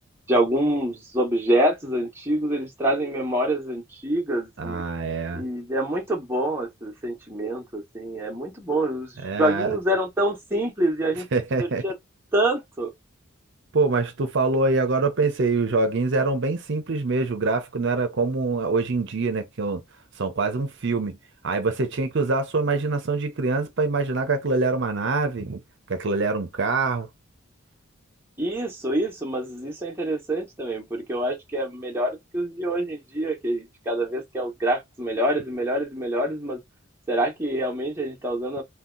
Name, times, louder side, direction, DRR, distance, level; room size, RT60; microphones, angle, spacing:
voice 1, 0.3-4.8 5.3-11.3 11.6-11.9 12.3-12.9 28.4-36.6 37.1-38.6, right 1 dB, 10° right, 0.8 m, -26 dB
voice 2, 4.6-5.4 9.2-9.7 11.3-11.8 13.7-19.8 20.2-21.2 21.4-25.6 25.9-27.1, right 3 dB, 55° right, 0.6 m, -24 dB
2.7 x 2.2 x 3.7 m
head